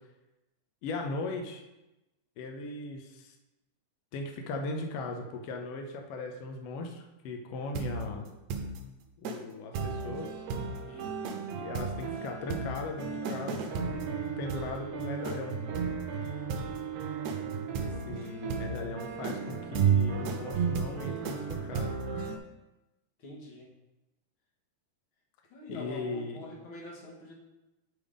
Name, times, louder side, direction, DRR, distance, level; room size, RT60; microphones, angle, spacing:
voice 1, 0.8-1.6 2.4-3.3 4.1-8.3 9.2-10.4 11.5-15.6 17.8-22.0 25.7-26.4, left 3 dB, 80° left, 3 dB, 1.4 m, -38 dB
sound 1, 7.8-8.1 8.5-8.8 9.2-9.4 9.7-22.4, right 6 dB, 75° right, 1.8 m, -33 dB
voice 2, 10.9-11.3 18.6-18.7 23.2-23.7 25.5-27.3, left 1 dB, 50° left, -2 dB, 1.7 m, -45 dB
9.9 x 3.6 x 5.0 m, 1.0 s
omnidirectional pair, 3.8 m